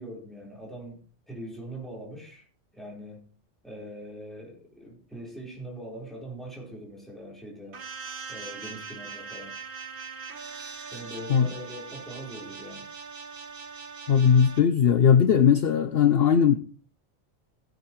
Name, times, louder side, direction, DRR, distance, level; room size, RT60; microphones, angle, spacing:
voice 1, 0.0-2.4 2.7-3.2 3.6-7.8 8.3-9.6 10.9-12.9, right 1 dB, ahead, -3 dB, 4.5 m, -42 dB
sound 1, 7.7-14.6, right 5 dB, 50° right, 1.2 m, -41 dB
voice 2, 14.1-16.5, left 7 dB, 60° left, 10 dB, 0.8 m, -19 dB
17.0 x 9.4 x 3.1 m, 0.42 s
omnidirectional pair, 1.2 m